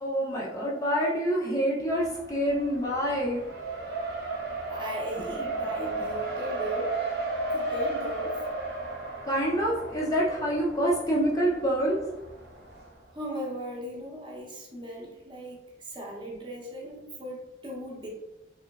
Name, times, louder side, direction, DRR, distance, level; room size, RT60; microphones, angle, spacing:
voice 1, 0.0-3.4 9.2-12.0, equal, 20° left, -4 dB, 0.5 m, -26 dB
Race car auto racing, 1.9-12.9, right 2 dB, 70° right, 0.8 m, -34 dB
voice 2, 4.7-7.0 7.5-8.4 13.1-18.1, equal, 25° right, -3 dB, 0.6 m, -38 dB
3.1 x 2.9 x 2.3 m, 0.98 s
head